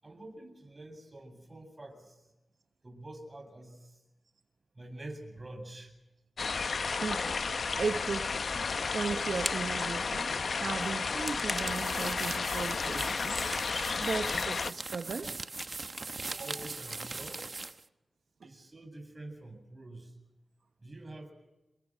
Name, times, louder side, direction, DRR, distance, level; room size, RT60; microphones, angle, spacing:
voice 1, 0.0-2.3 2.8-4.0 4.7-6.0 16.4-17.6 18.4-20.2 20.8-21.3, right 1 dB, 30° right, 6 dB, 7.9 m, -47 dB
sound 1, 6.4-14.7, left 4 dB, 65° left, 0.8 m, -32 dB
voice 2, 6.9-8.7 8.9-10.3 10.6-13.4 14.0-15.3 16.3-16.5 18.4-18.5, right 5 dB, 70° right, 7 dB, 1.2 m, -37 dB
Crack Knuckles Bones, 8.3-17.5, left 1 dB, 20° left, 1.3 m, -47 dB
sound 2, 11.5-17.8, right 3 dB, 45° right, 1.1 m, -40 dB
29.0 x 23.0 x 6.3 m, 1.0 s
cardioid pair, 60°, 0 cm